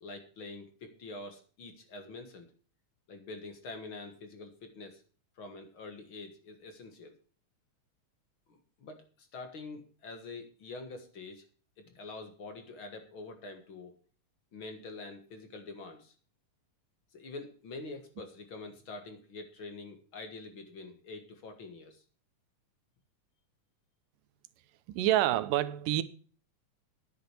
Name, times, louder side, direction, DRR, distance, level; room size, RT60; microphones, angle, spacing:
voice 1, 0.0-2.5 3.1-5.0 5.4-7.1 8.5-11.4 11.9-13.9 14.5-16.1 17.1-22.0, left 3 dB, 50° left, 1.9 m, -46 dB
voice 2, 24.9-26.0, right 14 dB, 80° right, 2.3 m, -27 dB
10.0 x 7.8 x 6.6 m
omnidirectional pair, 3.8 m